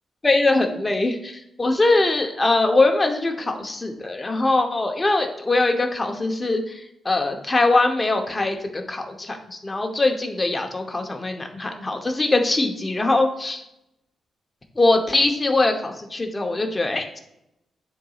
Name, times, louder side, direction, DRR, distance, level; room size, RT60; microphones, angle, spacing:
voice 1, 0.2-13.6 14.8-17.2, left 2 dB, 20° left, 4 dB, 0.9 m, -22 dB
9.7 x 4.0 x 2.4 m, 0.84 s
cardioid pair, 95°, 0 cm